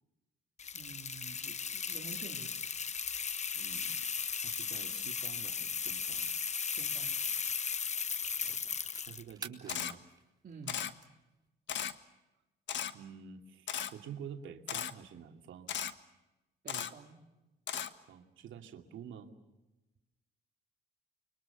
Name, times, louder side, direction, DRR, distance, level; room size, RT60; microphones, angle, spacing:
sound 1, 0.6-9.3, left 6 dB, 35° left, 0.9 m, -36 dB
voice 1, 0.7-2.5 6.8-7.2 10.4-10.8 16.6-17.2, right 5 dB, 45° right, -1 dB, 3.3 m, -49 dB
voice 2, 3.5-4.0 4.4-6.3 8.4-8.6 9.0-10.0 12.9-15.7 17.7-17.8 18.1-19.3, right 8 dB, 75° right, 4 dB, 2.7 m, -49 dB
sound 2, 6.6-8.0 8.5-11.5, right 3 dB, 20° right, 3.7 m, -51 dB
Camera, 9.7-9.9 10.7-10.9 11.7-11.9 12.7-12.9 13.7-13.9 14.7-14.9 15.7-15.9 16.7-16.9 17.7-17.9, left 9 dB, 65° left, 1.6 m, -36 dB
29.5 x 24.0 x 6.9 m, 1.0 s
cardioid pair, 90°, 20 cm